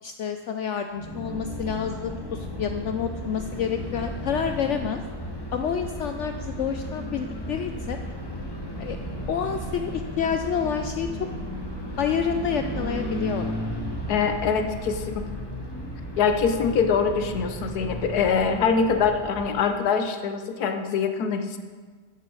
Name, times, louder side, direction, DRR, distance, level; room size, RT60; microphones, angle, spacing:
voice 1, 0.0-5.0 5.5-8.0 8.8-9.0 9.3-11.1 12.0-13.6, left 7 dB, 90° left, 6 dB, 0.6 m, -28 dB
sound 1, 0.9-19.7, equal, 15° left, 1.0 m, -34 dB
voice 2, 14.1-15.2 16.2-21.6, left 6 dB, 70° left, 7 dB, 1.2 m, -24 dB
10.5 x 8.8 x 4.7 m, 1.5 s
omnidirectional pair, 1.8 m